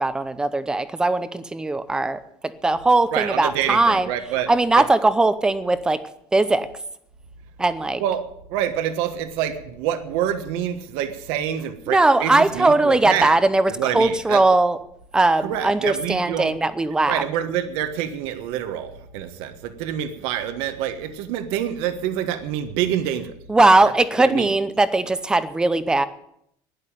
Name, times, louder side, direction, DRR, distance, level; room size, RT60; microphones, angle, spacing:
voice 1, 0.0-4.1 4.5-6.0 6.3-6.7 7.6-8.0 11.9-14.8 15.1-17.2 23.5-26.1, right 2 dB, 10° right, 13 dB, 0.7 m, -19 dB
voice 2, 3.1-4.5 4.7-4.8 8.0-8.2 8.5-13.3 13.8-14.4 15.4-16.5 17.1-23.3 23.8-23.9 24.2-24.5, right 10 dB, 70° right, 9 dB, 1.5 m, -26 dB
12.0 x 10.5 x 9.0 m, 0.74 s
cardioid pair, 175°, 10 cm